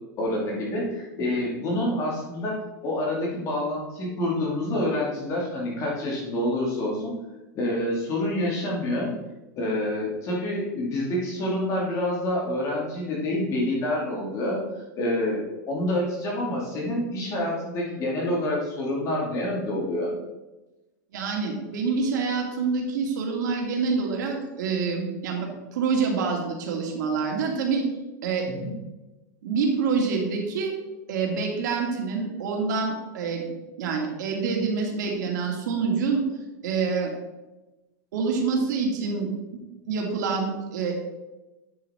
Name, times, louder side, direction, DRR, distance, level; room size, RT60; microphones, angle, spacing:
voice 1, 0.2-7.2 7.5-9.1 9.6-20.2 28.5-28.7, left 1 dB, 35° left, -3 dB, 2.3 m, -27 dB
voice 2, 21.1-27.8 28.2-28.5 29.4-30.7 31.1-33.4 33.8-36.2 36.6-37.1 38.1-39.6 39.9-40.9, right 5 dB, 80° right, 1 dB, 2.3 m, -26 dB
9.3 x 5.8 x 4.3 m, 1.1 s
supercardioid pair, 155°, 10 cm